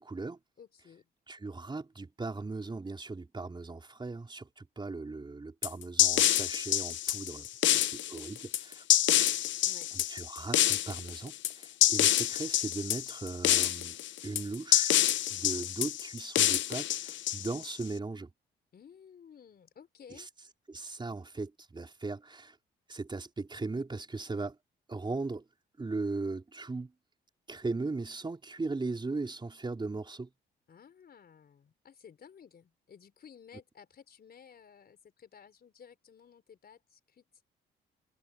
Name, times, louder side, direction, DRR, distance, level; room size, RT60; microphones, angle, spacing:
voice 1, 0.0-0.4 1.3-8.8 9.9-15.0 15.3-18.3 20.2-20.3 20.7-22.6 22.9-24.6 24.9-25.4 25.8-26.9 27.5-30.3, right 3 dB, 25° right, 4.5 m, -38 dB
voice 2, 0.6-1.1 9.6-9.9 18.7-20.3 30.7-37.2, left 7 dB, 50° left, 4.6 m, -55 dB
sound 1, 5.6-17.8, left 12 dB, 70° left, 0.8 m, -27 dB
cardioid pair, 90°, 20 cm